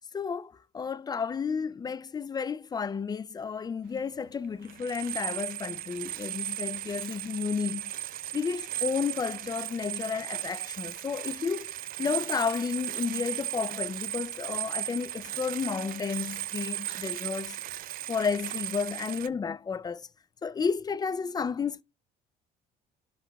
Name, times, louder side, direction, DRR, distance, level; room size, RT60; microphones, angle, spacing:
voice 1, 0.0-7.8 8.3-11.7 12.0-17.6 18.1-20.0 20.4-21.8, left 5 dB, 25° left, 0.3 m, -32 dB
sound 1, 4.0-4.1 4.4-19.3, right 13 dB, 60° right, 0.4 m, -36 dB
13.0 x 6.1 x 2.2 m
cardioid pair, 110°, 17 cm